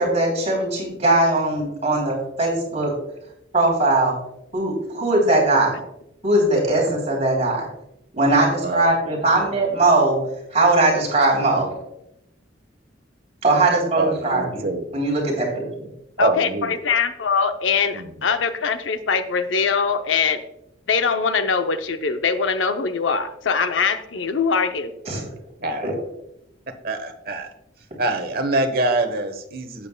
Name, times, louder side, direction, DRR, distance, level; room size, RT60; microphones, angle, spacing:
voice 1, 0.0-2.9 3.5-4.1 4.5-5.8 6.2-7.7 8.1-10.2 10.5-11.7 13.4-14.6 14.9-15.9 25.1-25.2 25.8-25.9, right 2 dB, 35° right, -1 dB, 3.3 m, -20 dB
voice 2, 8.6-9.6 13.9-14.9 16.2-16.7 17.9-18.3 25.6-25.9 26.8-27.5 28.0-29.9, right 2 dB, 50° right, 7 dB, 1.1 m, -25 dB
voice 3, 16.2-20.4 20.9-24.9, left 5 dB, 85° left, 9 dB, 0.6 m, -22 dB
12.5 x 8.7 x 2.2 m, 0.82 s
head